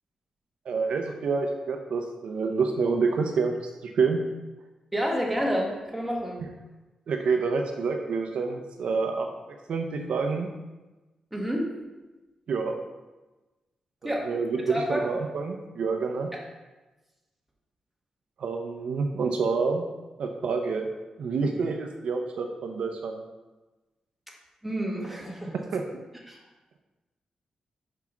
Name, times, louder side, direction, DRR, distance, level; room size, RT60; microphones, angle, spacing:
voice 1, 0.7-3.5 3.8-4.2 6.4-6.5 7.1-9.3 9.7-10.5 12.5-12.8 14.0-16.3 18.4-19.8 20.2-20.9 21.2-23.2 25.5-25.8, right 4 dB, 65° right, 4 dB, 0.7 m, -28 dB
voice 2, 4.9-6.4 11.3-11.7 14.0-14.3 14.7-15.0 24.6-25.5 26.3-26.4, equal, 5° right, -2 dB, 1.4 m, -29 dB
6.1 x 5.7 x 5.9 m, 1.1 s
wide cardioid pair, 165°, 2 cm